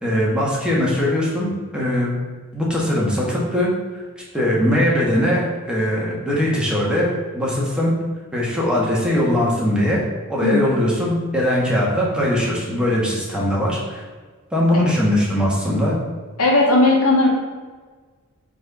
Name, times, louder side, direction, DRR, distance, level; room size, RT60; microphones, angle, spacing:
voice 1, 0.0-2.2 2.5-3.7 4.2-5.4 5.7-7.9 8.3-14.0 14.5-16.0, left 1 dB, 5° right, -5 dB, 1.5 m, -20 dB
voice 2, 16.4-17.3, left 2 dB, 75° left, -2 dB, 1.6 m, -16 dB
4.7 x 4.4 x 5.4 m, 1.4 s
head